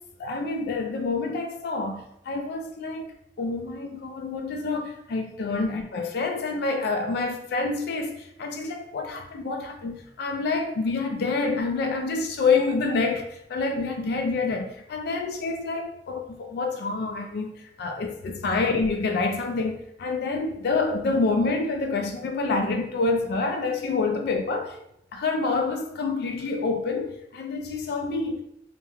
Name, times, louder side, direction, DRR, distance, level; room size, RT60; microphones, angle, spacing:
voice 1, 0.2-3.1 3.4-24.8 25.1-28.4, left 3 dB, 60° left, 0.3 m, -27 dB
3.0 x 2.1 x 2.3 m
head